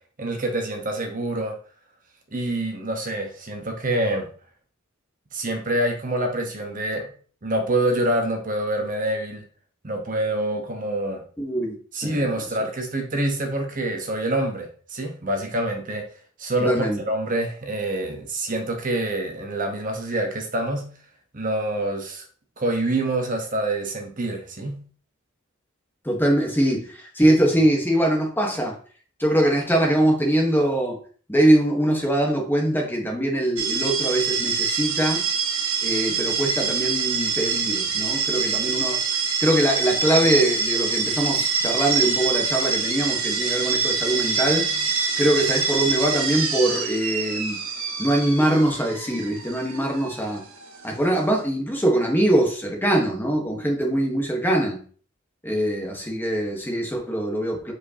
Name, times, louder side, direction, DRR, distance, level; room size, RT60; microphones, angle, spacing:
voice 1, 0.2-1.6 2.3-4.3 5.3-7.1 7.4-9.4 9.8-11.2 11.9-16.0 16.4-20.9 21.3-22.2 22.6-24.8, right 1 dB, 40° right, 3 dB, 1.1 m, -26 dB
voice 2, 11.4-11.7 12.0-12.2 16.6-17.0 26.0-28.8 29.2-31.0 31.3-35.2 35.8-44.9 45.2-47.6 48.0-50.4 50.8-54.8 55.4-57.7, right 1 dB, 10° left, 1 dB, 1.3 m, -22 dB
sound 1, 33.6-51.4, right 5 dB, 90° right, 1.4 m, -25 dB
7.4 x 5.0 x 2.9 m, 0.43 s
head